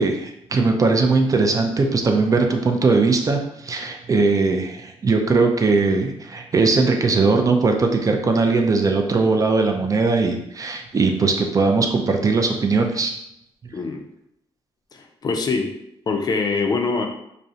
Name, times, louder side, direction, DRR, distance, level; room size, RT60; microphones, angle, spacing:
voice 1, 0.0-13.1, right 3 dB, 35° right, 4 dB, 0.3 m, -19 dB
voice 2, 14.9-15.8 16.1-17.1, left 4 dB, 40° left, 3 dB, 0.4 m, -23 dB
2.4 x 2.0 x 2.6 m, 0.78 s
cardioid pair, 75°, 10 cm